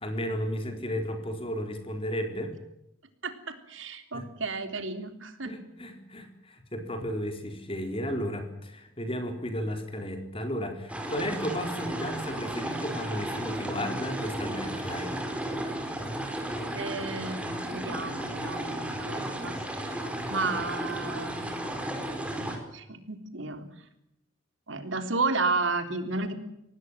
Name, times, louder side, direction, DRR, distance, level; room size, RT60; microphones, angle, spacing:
voice 1, 0.0-2.5 4.1-4.2 5.4-15.2, equal, 30° left, 6 dB, 4.3 m, -34 dB
voice 2, 3.2-5.6 16.7-20.0 20.3-21.5 22.7-23.7 24.7-26.3, right 3 dB, 80° right, 7 dB, 3.6 m, -32 dB
sound 1, 10.9-22.6, right 1 dB, 5° right, 4.4 m, -34 dB
25.0 x 18.5 x 7.5 m, 0.81 s
head